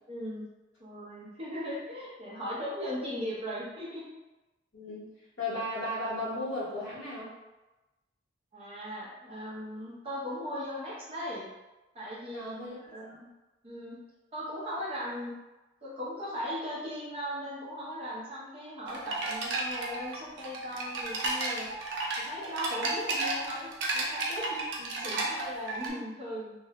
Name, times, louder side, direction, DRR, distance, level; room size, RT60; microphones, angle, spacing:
voice 1, 0.1-0.4 0.8-4.1 8.5-11.5 11.9-12.5 12.8-13.3 13.6-14.0 14.3-15.3 15.8-21.7 22.2-24.6 25.0-26.5, equal, 30° right, -7 dB, 0.7 m, -38 dB
voice 2, 4.7-5.1 5.4-7.3 12.3-12.8 13.1-13.2 24.8-25.2, left 1 dB, 70° left, -7 dB, 1.0 m, -35 dB
sound 1, 18.9-25.9, right 2 dB, 60° right, 0.4 m, -33 dB
2.6 x 2.1 x 2.8 m, 1.1 s
head